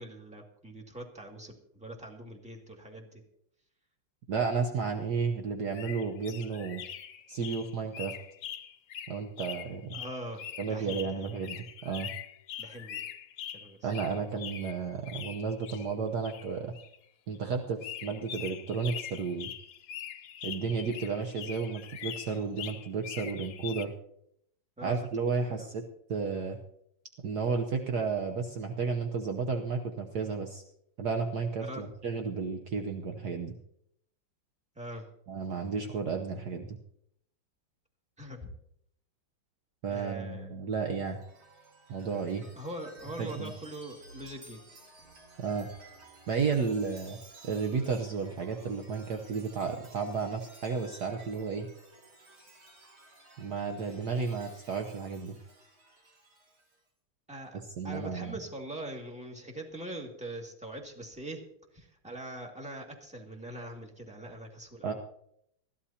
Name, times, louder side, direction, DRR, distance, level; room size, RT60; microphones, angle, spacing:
voice 1, 0.0-3.2 9.9-11.2 12.6-13.0 13.5-13.9 24.8-25.0 25.3-25.7 31.6-31.8 34.8-35.1 38.2-38.5 39.9-40.5 42.6-44.6 57.3-61.4 61.7-64.9, right 1 dB, 5° right, 1 dB, 2.0 m, -42 dB
voice 2, 4.3-6.8 7.3-8.2 9.1-10.0 10.6-12.1 13.8-16.7 17.3-19.5 20.4-23.9 24.8-25.8 26.1-26.6 27.2-30.6 31.0-33.5 35.3-36.8 39.8-41.2 41.9-42.4 43.2-43.5 45.4-45.7 46.3-47.2 47.4-51.7 53.4-55.4 57.8-58.4 64.8-64.9, right 5 dB, 60° right, 4 dB, 1.4 m, -32 dB
sound 1, 5.7-15.9 16.2-17.0 17.4-17.5 17.8-23.9, left 10 dB, 65° left, 0.9 m, -43 dB
Chime, 40.9-56.8, right 2 dB, 80° right, 3.3 m, -55 dB
20.5 x 14.5 x 2.9 m, 0.73 s
omnidirectional pair, 2.2 m